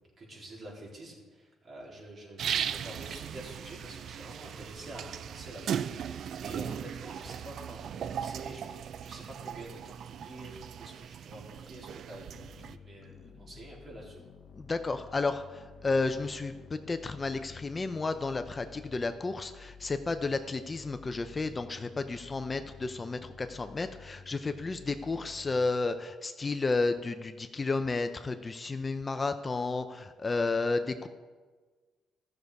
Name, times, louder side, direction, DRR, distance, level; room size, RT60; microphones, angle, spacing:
voice 1, 0.2-14.2, right 1 dB, 45° right, -3 dB, 3.6 m, -47 dB
sound 1, 2.4-12.8, right 8 dB, 65° right, 0.4 m, -38 dB
sound 2, 12.3-25.7, left 6 dB, 60° left, 0.8 m, -52 dB
voice 2, 14.5-31.1, left 3 dB, 30° left, 9 dB, 0.5 m, -32 dB
14.0 x 6.6 x 4.7 m, 1.4 s
cardioid pair, 90°, 0 cm